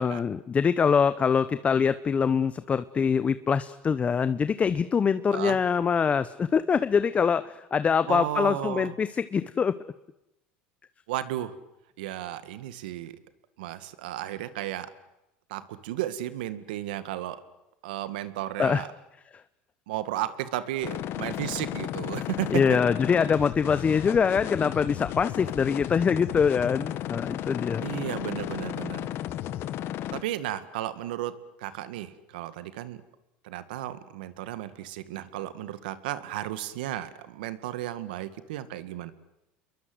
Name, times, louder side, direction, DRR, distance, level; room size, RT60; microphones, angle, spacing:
voice 1, 0.0-9.8 18.6-18.8 22.5-27.8, left 6 dB, 30° left, 14 dB, 0.9 m, -24 dB
voice 2, 8.1-8.9 11.1-11.5 12.0-13.2 13.6-14.9 15.5-17.4 17.8-18.9 19.9-22.8 27.8-29.1 30.1-31.3 31.6-33.0 33.4-39.1, right 13 dB, 85° right, 13 dB, 2.0 m, -34 dB
sound 1, 20.8-30.2, left 12 dB, 55° left, 1.6 m, -34 dB
29.5 x 22.5 x 8.0 m, 0.90 s
supercardioid pair, 105°, 5 cm